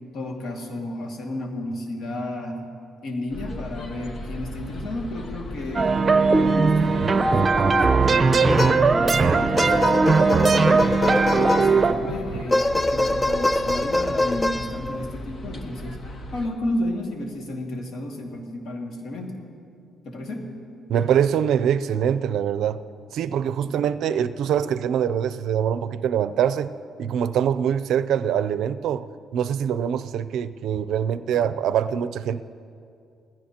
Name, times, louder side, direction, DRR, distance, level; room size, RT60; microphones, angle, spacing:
voice 1, 0.1-2.6 3.0-5.9 6.4-9.9 10.3-19.4 20.0-20.4 23.6-24.0, left 1 dB, 70° left, 1 dB, 2.1 m, -32 dB
sound 1, 3.3-16.5, left 1 dB, 50° left, 1.3 m, -37 dB
sound 2, 5.7-11.9, right 4 dB, 35° right, 0.8 m, -19 dB
sound 3, 8.5-9.1 9.6-12.0 12.5-15.1, left 1 dB, 25° left, 0.6 m, -24 dB
voice 2, 20.9-22.8 23.1-29.0 29.3-32.4, right 9 dB, 80° right, 14 dB, 0.4 m, -24 dB
20.0 x 15.5 x 2.9 m, 2.5 s
cardioid pair, 90°, 0 cm